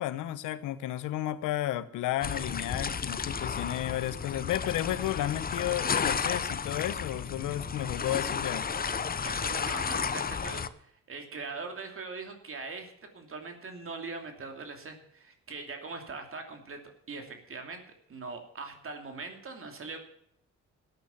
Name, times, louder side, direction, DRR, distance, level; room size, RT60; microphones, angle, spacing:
voice 1, 0.0-8.7, left 13 dB, 90° left, 15 dB, 1.0 m, -32 dB
sound 1, 2.2-10.7, left 6 dB, 30° left, 0.8 m, -33 dB
voice 2, 9.0-16.8 17.1-17.8 18.1-20.0, right 4 dB, 45° right, 5 dB, 2.8 m, -41 dB
12.5 x 9.4 x 7.0 m, 0.69 s
cardioid pair, 90°, 30 cm